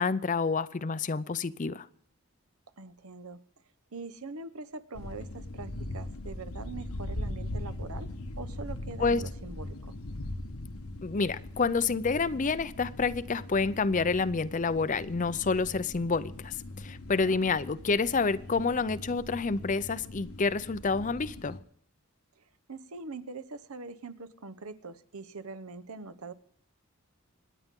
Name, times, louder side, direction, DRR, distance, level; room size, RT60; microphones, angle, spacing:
voice 1, 0.0-1.9 9.0-9.2 11.0-21.6, left 4 dB, 35° left, 16 dB, 0.5 m, -28 dB
voice 2, 2.8-3.4 3.9-9.9 17.2-17.4 22.4-22.5 22.7-26.3, right 3 dB, 80° right, 10 dB, 1.0 m, -43 dB
sound 1, 4.9-21.6, left 1 dB, 80° left, 1.2 m, -40 dB
26.5 x 10.0 x 3.7 m, 0.63 s
head